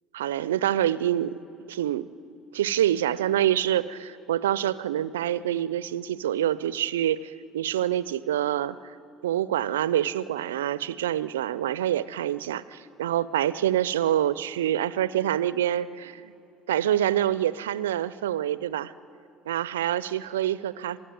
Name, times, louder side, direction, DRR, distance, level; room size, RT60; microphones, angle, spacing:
voice 1, 0.1-1.4 1.7-2.1 2.5-8.8 9.2-16.3 16.7-18.9 19.5-21.0, right 11 dB, 80° right, 18 dB, 0.5 m, -26 dB
26.5 x 18.5 x 9.4 m, 2.8 s
hypercardioid pair, 65°, 0 cm